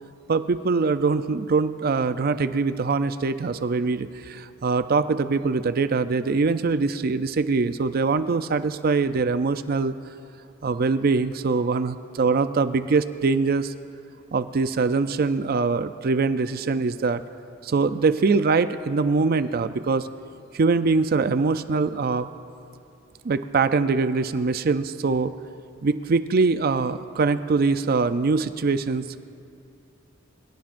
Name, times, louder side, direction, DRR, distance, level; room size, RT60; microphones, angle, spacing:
voice 1, 0.3-9.9 10.6-13.7 14.3-17.2 17.6-20.1 20.5-22.3 23.2-25.3 25.8-29.2, right 4 dB, 50° right, 12 dB, 0.4 m, -23 dB
25.5 x 17.5 x 2.6 m, 2.5 s
head